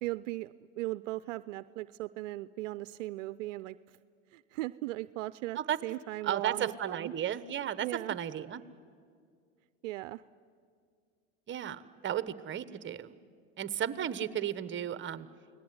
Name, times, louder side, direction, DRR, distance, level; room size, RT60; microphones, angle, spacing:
voice 1, 0.0-4.0 4.3-7.1 7.8-8.2 9.8-10.2, right 18 dB, 75° right, 16 dB, 0.6 m, -38 dB
voice 2, 6.2-8.6 11.5-13.1 13.6-15.3, right 10 dB, 30° right, 15 dB, 1.2 m, -34 dB
29.0 x 19.0 x 9.6 m, 2.1 s
hypercardioid pair, 100°, 38 cm